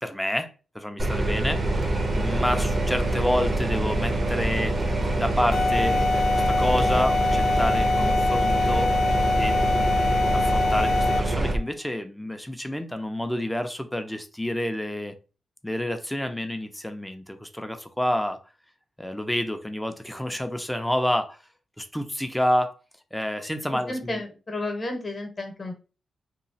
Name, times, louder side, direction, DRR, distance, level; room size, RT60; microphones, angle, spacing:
voice 1, 0.0-4.8 5.1-6.0 6.5-8.9 9.3-15.1 15.6-18.4 19.0-21.4 21.8-22.7 23.1-24.2, left 1 dB, 5° left, 0.5 m, -29 dB
sound 1, 1.0-11.6, right 2 dB, 40° right, 0.7 m, -25 dB
sound 2, 5.5-11.4, left 3 dB, 65° left, 0.6 m, -24 dB
voice 2, 23.9-25.8, left 2 dB, 40° left, 0.9 m, -32 dB
3.0 x 2.3 x 2.7 m
cardioid pair, 65°, 0 cm